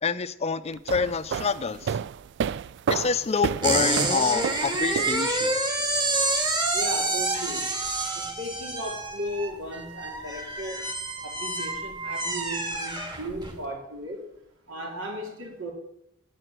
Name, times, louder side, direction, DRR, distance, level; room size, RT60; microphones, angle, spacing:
voice 1, 0.0-2.0 2.9-5.6, left 5 dB, 35° left, 14 dB, 0.5 m, -27 dB
sound 1, 0.7-5.6, right 7 dB, 60° right, 0.3 m, -31 dB
sound 2, 3.6-13.6, right 2 dB, 25° right, 1.7 m, -28 dB
voice 2, 6.7-7.7 8.1-10.8 11.2-14.2 14.7-15.7, equal, 80° right, 1 dB, 3.0 m, -36 dB
9.2 x 7.8 x 7.6 m, 0.81 s
head